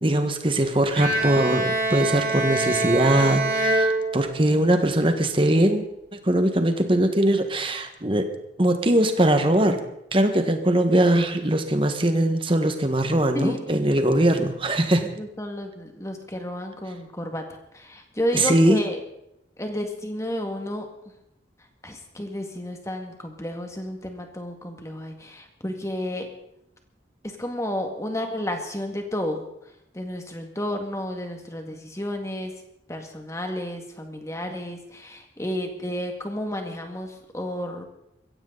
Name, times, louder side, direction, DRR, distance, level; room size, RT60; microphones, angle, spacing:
voice 1, 0.0-8.3 8.6-9.8 10.1-15.0 18.3-18.8, right 1 dB, 30° right, 6 dB, 1.5 m, -21 dB
Bowed string instrument, 1.0-4.7, right 2 dB, 50° right, 5.3 m, -25 dB
voice 2, 15.0-17.4 17.7-19.0 19.6-20.9 21.8-26.3 27.2-29.4 29.9-32.5 32.9-37.8, left 1 dB, 15° left, 4 dB, 2.0 m, -31 dB
22.0 x 16.0 x 4.0 m, 0.81 s
head